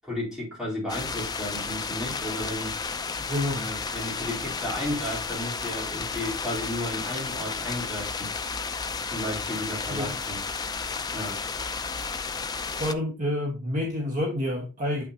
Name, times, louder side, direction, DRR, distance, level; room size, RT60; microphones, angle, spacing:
voice 1, 0.0-2.8 3.5-8.3 9.1-10.4 11.1-11.4, left 1 dB, 5° right, 3.6 m, -33 dB
sound 1, 0.9-12.9, left 5 dB, 20° left, 0.5 m, -32 dB
voice 2, 3.3-3.7 9.9-10.1 12.8-15.0, left 1 dB, 40° right, 1.4 m, -28 dB
8.5 x 6.0 x 2.8 m
head